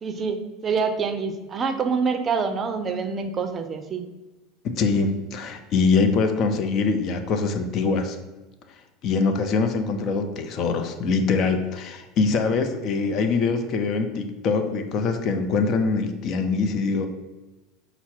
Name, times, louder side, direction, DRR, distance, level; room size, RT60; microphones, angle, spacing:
voice 1, 0.0-4.0, right 5 dB, 30° right, 7 dB, 0.5 m, -26 dB
voice 2, 4.6-8.2 9.0-17.1, left 4 dB, 50° left, 7 dB, 0.5 m, -23 dB
5.6 x 2.0 x 4.3 m, 1.1 s
hypercardioid pair, 75°, 0 cm